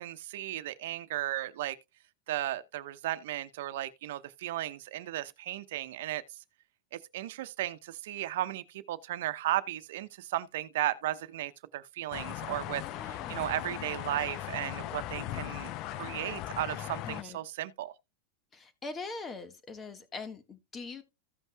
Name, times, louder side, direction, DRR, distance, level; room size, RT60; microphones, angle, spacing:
voice 1, 0.0-1.8 2.3-6.2 6.9-17.9, right 14 dB, 70° right, 0.9 m, -35 dB
sound 1, 12.1-17.2, left 13 dB, 45° left, 0.5 m, -38 dB
voice 2, 12.8-13.5 17.0-17.4 18.5-21.0, left 4 dB, 20° left, 1.6 m, -42 dB
15.5 x 5.5 x 2.3 m
supercardioid pair, 135°, 0 cm